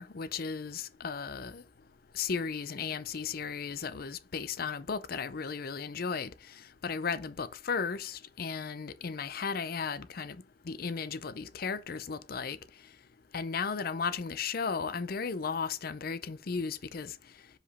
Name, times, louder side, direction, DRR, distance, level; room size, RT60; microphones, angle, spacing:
voice 1, 0.0-1.6 2.1-6.3 6.8-10.4 10.7-12.6 13.3-17.1, left 5 dB, 55° left, 0.5 m, -35 dB
5.1 x 5.0 x 4.1 m
head